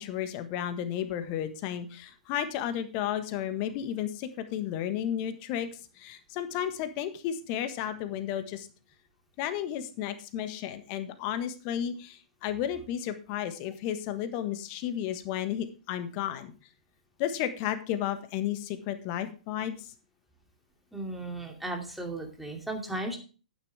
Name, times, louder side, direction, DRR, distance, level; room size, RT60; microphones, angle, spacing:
voice 1, 0.0-5.7 6.0-8.7 9.4-16.5 17.2-19.8, left 10 dB, 35° left, 9 dB, 1.4 m, -33 dB
voice 2, 20.9-23.2, right 2 dB, 5° right, 1 dB, 2.6 m, -35 dB
11.0 x 9.6 x 3.5 m, 0.37 s
figure-of-eight pair, 110°, 4 cm